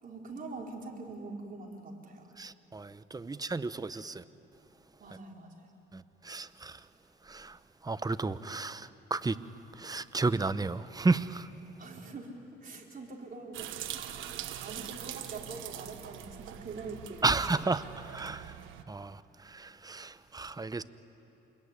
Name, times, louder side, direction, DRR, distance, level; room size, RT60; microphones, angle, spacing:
voice 1, 0.0-2.3 3.3-3.4 5.0-5.7 8.4-8.5 11.8-12.3 12.6-17.4, right 3 dB, 45° right, 4.4 m, -44 dB
voice 2, 2.4-4.2 5.9-6.8 7.2-9.4 9.8-11.5 17.2-18.5 18.9-20.8, right 3 dB, 20° right, 0.8 m, -33 dB
sound 1, 13.5-18.8, right 11 dB, 85° right, 1.3 m, -43 dB
27.5 x 22.0 x 9.8 m
cardioid pair, 90°, 20 cm